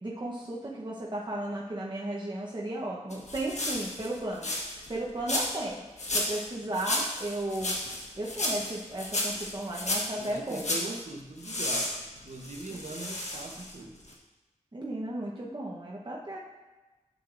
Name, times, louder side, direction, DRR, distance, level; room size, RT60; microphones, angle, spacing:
voice 1, 0.0-5.8 6.1-7.7 8.2-10.7 12.7-12.8 14.7-16.4, right 1 dB, 40° right, -4 dB, 0.9 m, -35 dB
sound 1, 3.1-4.9 5.3-5.7 6.0-6.5 6.7-10.9 11.4-13.8 14.1-14.2, left 1 dB, 65° left, 1.4 m, -33 dB
voice 2, 10.2-14.0, right 2 dB, 70° right, 2 dB, 1.0 m, -41 dB
9.0 x 6.4 x 2.5 m, 1.1 s
wide cardioid pair, 50°, 13 cm